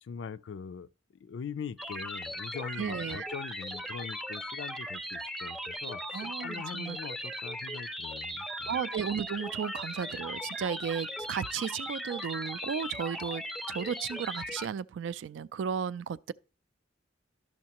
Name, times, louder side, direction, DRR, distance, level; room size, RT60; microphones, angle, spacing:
voice 1, 0.0-8.8, left 6 dB, 70° left, 0.4 m, -42 dB
sound 1, 1.8-14.7, equal, ahead, 0.4 m, -38 dB
voice 2, 2.8-3.2 6.1-7.0 8.7-16.3, right 7 dB, 80° right, 0.3 m, -34 dB
12.0 x 6.3 x 2.9 m
head